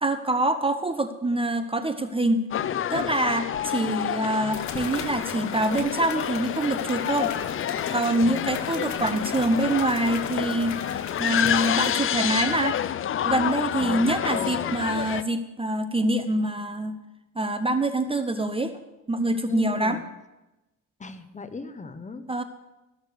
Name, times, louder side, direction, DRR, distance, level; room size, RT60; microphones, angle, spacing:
voice 1, 0.0-2.4 2.9-7.3 7.9-10.8 11.2-12.8 13.2-17.0 17.4-18.8 19.1-20.0 22.3-22.4, right 1 dB, 20° right, 10 dB, 0.6 m, -25 dB
sound 1, 2.5-15.2, left 10 dB, 45° left, 0.5 m, -28 dB
sound 2, 3.5-3.6 4.5-11.9, left 7 dB, 65° left, 1.2 m, -38 dB
voice 2, 8.2-9.1 13.8-14.0 14.3-14.7 19.5-20.0 21.0-22.2, left 3 dB, 25° left, 11 dB, 0.9 m, -38 dB
13.5 x 6.6 x 6.7 m, 1.0 s
cardioid pair, 90°, 30 cm